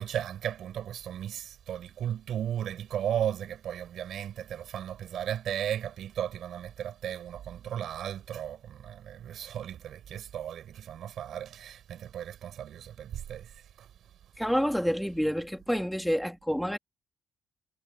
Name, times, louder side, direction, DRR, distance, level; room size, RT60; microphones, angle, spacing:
voice 1, 0.0-13.9, right 10 dB, 70° right, 4.9 m, -35 dB
voice 2, 14.4-16.8, equal, ahead, 2.7 m, -28 dB
supercardioid pair, 65°, 0 cm